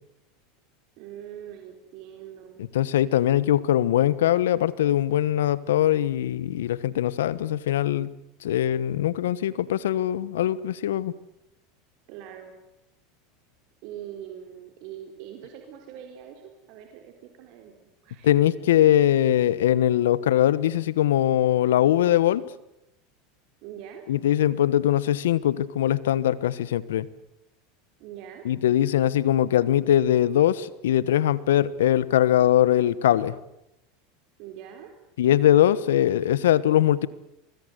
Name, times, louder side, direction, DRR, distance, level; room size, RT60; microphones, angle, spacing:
voice 1, 1.0-2.6 12.1-12.5 13.8-18.3 23.6-24.0 28.0-28.4 34.4-34.9, right 10 dB, 60° right, 4 dB, 4.2 m, -42 dB
voice 2, 2.6-8.1 8.4-11.1 18.2-22.5 24.1-27.1 28.4-33.4 35.2-37.1, left 12 dB, 85° left, 19 dB, 1.3 m, -21 dB
24.5 x 21.5 x 8.2 m, 0.85 s
hypercardioid pair, 100°, 0 cm